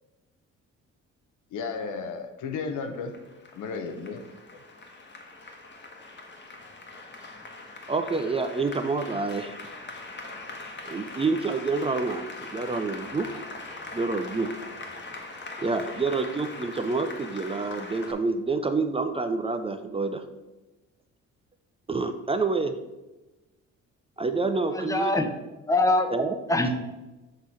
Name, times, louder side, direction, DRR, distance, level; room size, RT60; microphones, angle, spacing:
voice 1, 1.5-3.1 3.5-4.2, left 5 dB, 80° left, 5 dB, 0.9 m, -33 dB
Applause, 2.8-18.1, left 3 dB, 35° left, 1.2 m, -41 dB
voice 2, 7.9-9.6 10.9-13.4 13.9-14.5 15.6-20.2 21.9-22.8 24.2-25.1 26.1-26.4, right 3 dB, 20° right, 8 dB, 0.4 m, -28 dB
voice 3, 24.8-25.3 25.7-26.1 26.5-26.7, left 2 dB, 10° left, 6 dB, 0.7 m, -23 dB
6.6 x 3.1 x 5.5 m, 1.1 s
cardioid pair, 90°, 30 cm